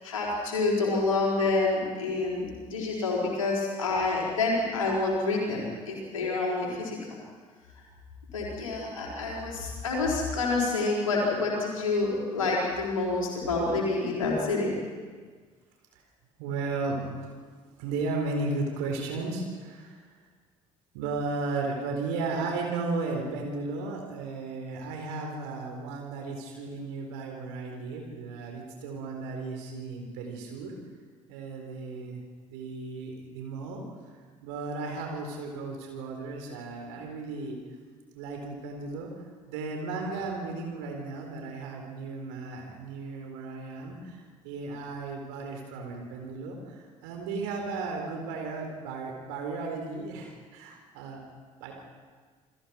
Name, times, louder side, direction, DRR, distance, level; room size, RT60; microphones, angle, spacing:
voice 1, 0.0-7.0 8.3-14.8, left 3 dB, 80° left, -3 dB, 4.8 m, -28 dB
voice 2, 16.4-17.0 17.8-20.1 20.9-30.7 31.3-32.2 32.5-33.8 34.1-37.6 38.1-51.2 51.6-51.7, right 3 dB, 65° right, 2 dB, 4.3 m, -35 dB
28.5 x 21.5 x 4.7 m, 1.5 s
figure-of-eight pair, 50°, 17 cm